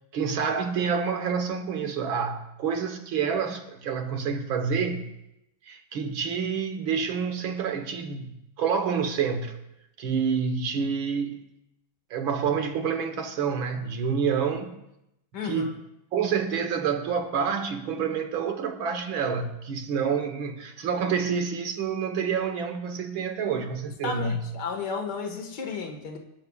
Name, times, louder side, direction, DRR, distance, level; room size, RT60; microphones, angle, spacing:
voice 1, 0.1-5.1 5.7-9.6 10.0-11.4 12.1-14.8 15.4-15.8 16.1-24.4, right 6 dB, 85° right, 2.1 m, -28 dB
voice 2, 15.3-15.7 23.4-23.6 24.0-26.2, left 4 dB, 60° left, 2.3 m, -33 dB
27.0 x 12.5 x 2.5 m
omnidirectional pair, 2.1 m